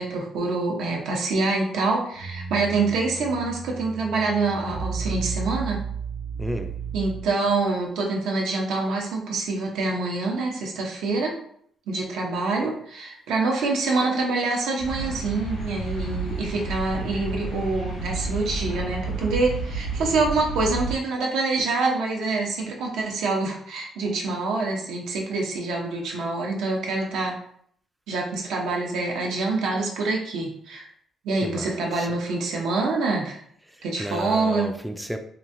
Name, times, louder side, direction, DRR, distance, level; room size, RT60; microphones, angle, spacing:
voice 1, 0.0-5.8 6.9-11.3 11.9-27.4 28.1-30.9 31.2-33.4 33.8-34.7, right 3 dB, 85° right, 0 dB, 0.7 m, -26 dB
sound 1, 2.1-7.6, right 5 dB, 70° left, 1.0 m, -33 dB
voice 2, 6.4-6.7 31.4-32.1 33.7-35.2, equal, 5° right, 5 dB, 0.3 m, -33 dB
sound 2, 14.8-20.9, right 3 dB, 85° left, 1.3 m, -31 dB
3.0 x 2.6 x 2.5 m, 0.64 s
cardioid pair, 90°, 0 cm